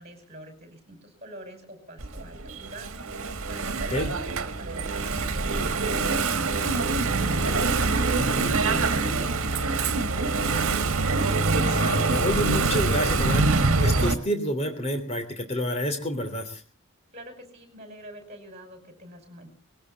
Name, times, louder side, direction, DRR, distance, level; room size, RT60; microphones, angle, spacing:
voice 1, 0.0-3.1 3.5-10.8 17.1-19.5, right 1 dB, 30° right, 5 dB, 5.4 m, -45 dB
Engine / Mechanisms, 2.0-14.1, right 3 dB, 70° right, 1.6 m, -24 dB
voice 2, 8.2-8.5 11.6-16.6, left 1 dB, 30° left, 6 dB, 3.1 m, -29 dB
19.5 x 17.0 x 4.1 m, 0.38 s
head